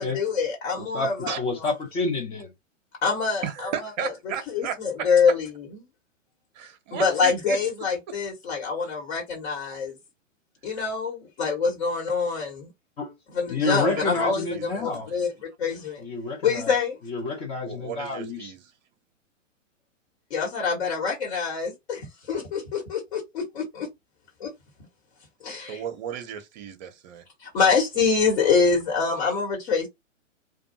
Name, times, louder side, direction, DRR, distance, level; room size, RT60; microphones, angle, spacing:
voice 1, 0.0-1.7 3.0-4.1 4.5-5.7 6.9-9.9 10.6-12.7 13.3-15.3 15.6-16.0 16.4-17.0 20.3-23.9 24.4-24.5 25.4-25.8 27.4-29.9, left 5 dB, 50° left, 1.3 m, -25 dB
voice 2, 0.8-2.5 13.0-13.1 13.5-15.1 16.0-16.7 17.0-18.5, left 3 dB, 15° left, 0.5 m, -29 dB
voice 3, 3.4-5.1 6.5-7.6 13.7-15.2 17.6-18.6 25.6-27.2, right 8 dB, 35° right, 0.7 m, -35 dB
2.5 x 2.3 x 2.7 m
figure-of-eight pair, 120°, 38 cm